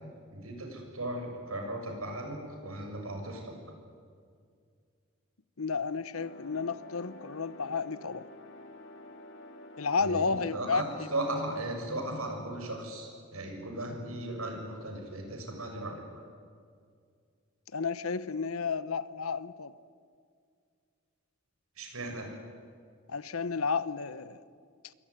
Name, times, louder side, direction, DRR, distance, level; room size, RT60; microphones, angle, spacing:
voice 1, 0.3-3.6 10.0-16.0 21.8-22.3, right 1 dB, 85° right, 6.8 m, -37 dB
voice 2, 5.6-8.3 9.8-10.8 17.7-19.7 23.1-24.4, left 5 dB, 85° left, 1.0 m, -32 dB
sound 1, 6.2-11.7, left 1 dB, 60° left, 2.6 m, -49 dB
27.0 x 23.0 x 9.7 m
head